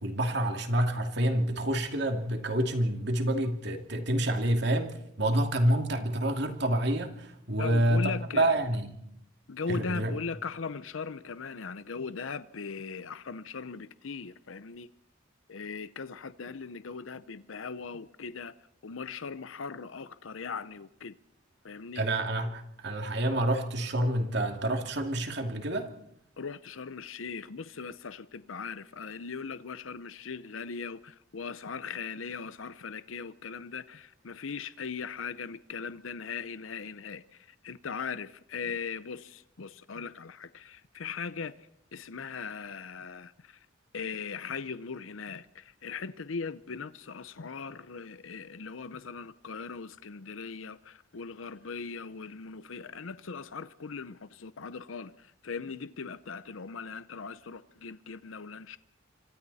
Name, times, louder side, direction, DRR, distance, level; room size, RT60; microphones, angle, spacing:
voice 1, 0.0-8.9 9.7-10.2 21.9-25.9, right 1 dB, 55° right, 2.6 m, -28 dB
voice 2, 7.6-8.5 9.5-14.9 15.5-18.5 18.8-21.2 21.6-22.1 26.4-43.7 43.9-58.8, left 5 dB, 85° left, 0.7 m, -39 dB
26.5 x 25.5 x 4.2 m
head